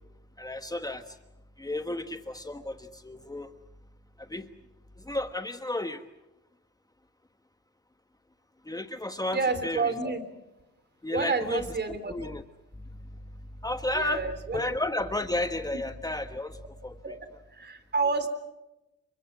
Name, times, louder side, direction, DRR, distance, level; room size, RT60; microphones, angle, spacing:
voice 1, 0.4-1.2 1.6-3.5 4.2-4.5 5.0-6.0 8.6-9.9 11.0-12.4 13.6-14.2 14.5-17.1, left 1 dB, 10° left, 8 dB, 1.3 m, -33 dB
voice 2, 9.3-10.2 11.1-12.1 13.9-14.7 17.0-17.2 17.5-18.3, right 4 dB, 35° right, 11 dB, 3.6 m, -29 dB
29.0 x 25.5 x 6.1 m, 0.96 s
cardioid pair, 90°, 30 cm